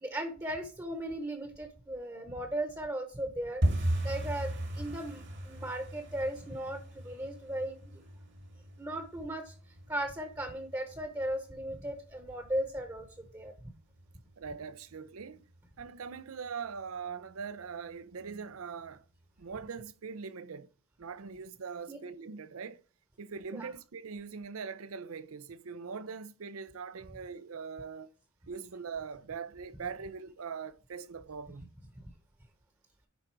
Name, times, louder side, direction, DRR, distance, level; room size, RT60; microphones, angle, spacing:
voice 1, 0.0-8.0 8.8-9.5 9.9-13.1 13.3-13.5 21.9-22.0 23.5-23.7, right 1 dB, 15° right, 0.9 m, -37 dB
sound 1, 3.6-14.3 14.6-15.3 15.5-16.5 16.8-16.9 17.4-17.9 18.3-18.4 18.9-19.0, right 1 dB, 60° right, 1.7 m, -37 dB
voice 2, 14.4-15.4 15.8-19.0 19.4-20.7 21.0-22.8 23.2-28.1 28.5-31.7, right 5 dB, 80° right, 0.6 m, -42 dB
10.5 x 3.9 x 4.6 m
head